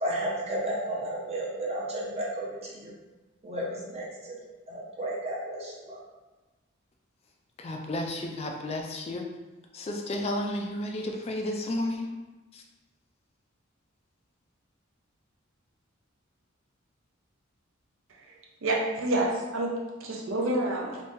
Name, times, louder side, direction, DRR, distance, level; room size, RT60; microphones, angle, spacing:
voice 1, 0.0-2.9 3.4-4.1 4.7-6.0, right 1 dB, 30° right, -4 dB, 0.8 m, -32 dB
voice 2, 7.6-9.3 9.7-12.1 12.5-12.6, left 1 dB, 30° left, 2 dB, 0.3 m, -32 dB
voice 3, 18.6-21.0, right 1 dB, 70° right, -1 dB, 0.6 m, -28 dB
2.9 x 2.6 x 3.4 m, 1.2 s
head